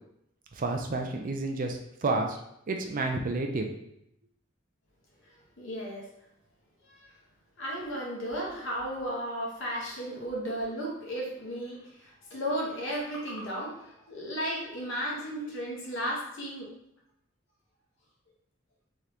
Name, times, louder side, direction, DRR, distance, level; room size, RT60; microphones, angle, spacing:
voice 1, 0.5-2.4 2.7-3.7, right 2 dB, 40° right, 4 dB, 0.5 m, -30 dB
voice 2, 5.6-6.1 6.9-7.1 7.6-16.7, equal, 65° left, -3 dB, 1.2 m, -34 dB
3.7 x 3.3 x 2.9 m, 0.77 s
head